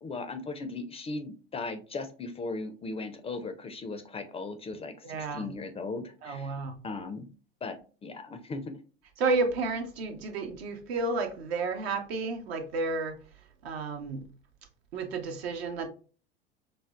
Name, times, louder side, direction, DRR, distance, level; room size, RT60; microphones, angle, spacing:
voice 1, 0.0-7.3 7.6-8.6, left 3 dB, 20° left, 0.4 m, -38 dB
voice 2, 5.0-5.5 6.2-6.8 9.2-13.2 13.6-14.2 14.9-15.9, right 3 dB, 75° right, 0.7 m, -31 dB
5.0 x 2.0 x 2.3 m
hypercardioid pair, 80°, 31 cm